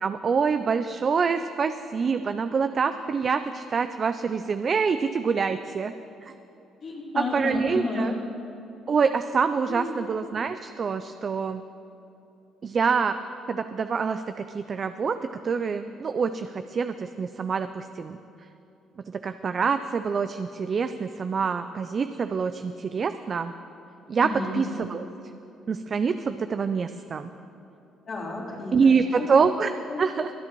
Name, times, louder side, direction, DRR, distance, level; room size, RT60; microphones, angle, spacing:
voice 1, 0.0-5.9 6.2-6.3 7.2-8.1 8.9-11.6 12.6-13.2 13.5-15.2 15.4-18.2 19.1-23.5 24.1-25.0 25.7-27.3 28.7-29.7 30.0-30.3, right 5 dB, 45° right, 9 dB, 0.4 m, -26 dB
voice 2, 6.8-8.1 9.7-10.0 24.2-24.6 28.1-29.3 29.9-30.0, left 2 dB, 55° left, -6 dB, 3.3 m, -32 dB
24.5 x 8.8 x 3.0 m, 2.9 s
supercardioid pair, 70°, 0 cm